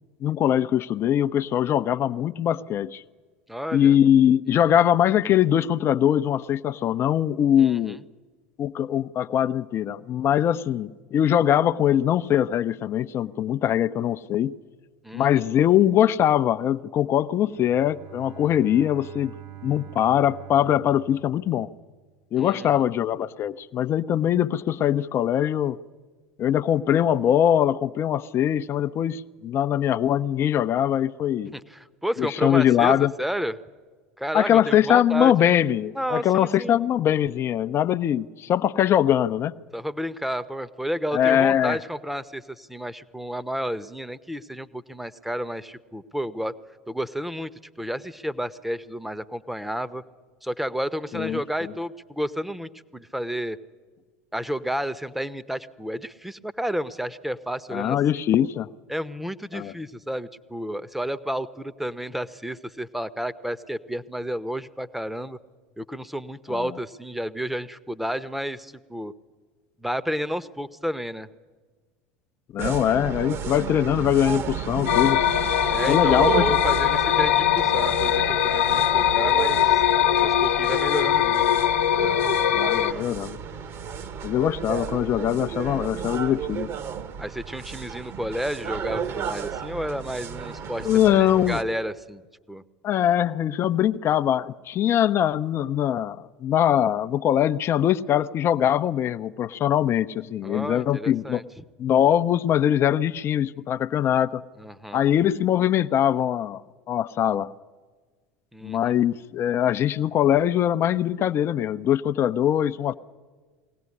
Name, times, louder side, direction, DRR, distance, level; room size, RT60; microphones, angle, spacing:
voice 1, 0.2-3.0 3.7-8.0 8.6-14.5 15.1-19.3 19.6-21.7 22.3-25.8 26.4-31.5 32.2-33.1 34.3-39.5 41.1-41.8 51.1-51.4 57.7-58.7 59.5-59.7 66.5-66.7 72.5-75.2 75.8-76.4 82.5-83.4 84.2-86.7 90.8-91.6 92.8-101.4 101.8-104.4 104.9-106.6 106.9-107.5 108.6-112.9, left 10 dB, 40° left, 14 dB, 0.7 m, -22 dB
voice 2, 3.5-3.9 4.5-4.6 7.6-7.9 15.0-15.5 22.4-22.8 31.5-33.6 34.2-35.5 36.0-36.8 39.7-46.5 46.9-47.5 47.8-50.0 50.4-53.6 54.3-58.0 58.4-58.5 58.9-65.4 65.8-69.1 69.8-71.3 75.7-79.8 80.2-81.6 87.2-92.2 92.5-92.6 100.4-101.6 104.6-105.0 108.5-108.9, equal, 5° right, 15 dB, 1.0 m, -31 dB
Bowed string instrument, 17.5-22.3, right 14 dB, 65° right, 1.8 m, -45 dB
sound 1, 72.6-91.6, right 8 dB, 45° right, 1.5 m, -32 dB
sound 2, 74.9-82.9, left 11 dB, 70° left, 1.1 m, -21 dB
22.5 x 17.5 x 9.8 m, 1.4 s
figure-of-eight pair, 75°, 7 cm